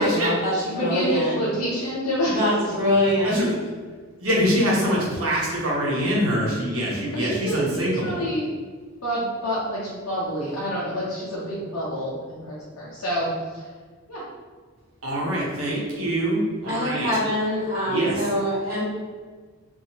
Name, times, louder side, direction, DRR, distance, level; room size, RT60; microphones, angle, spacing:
voice 1, 0.0-1.3 2.3-3.4 16.6-18.8, equal, 45° right, -9 dB, 1.4 m, -24 dB
voice 2, 0.5-2.4 6.6-6.7 7.1-8.5 9.0-13.7 14.1-14.2, equal, 80° left, -8 dB, 0.7 m, -28 dB
voice 3, 4.2-8.2 15.0-17.1 17.8-18.1, equal, 75° right, -5 dB, 1.0 m, -24 dB
2.7 x 2.7 x 2.9 m, 1.5 s
head